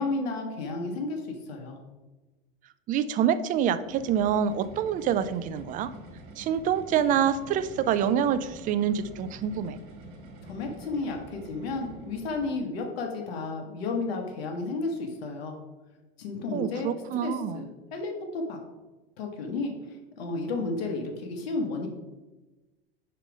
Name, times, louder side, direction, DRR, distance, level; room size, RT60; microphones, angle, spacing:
voice 1, 0.0-1.8 10.4-15.6 16.2-16.9 17.2-18.6 19.2-21.9, left 3 dB, 80° left, 2 dB, 1.3 m, -32 dB
voice 2, 2.9-5.9 6.4-9.8 16.5-17.6, right 8 dB, 30° right, 13 dB, 0.3 m, -26 dB
sound 1, 3.5-12.6, right 2 dB, 50° right, 1.8 m, -47 dB
5.6 x 5.1 x 4.7 m, 1.1 s
supercardioid pair, 115°, 30 cm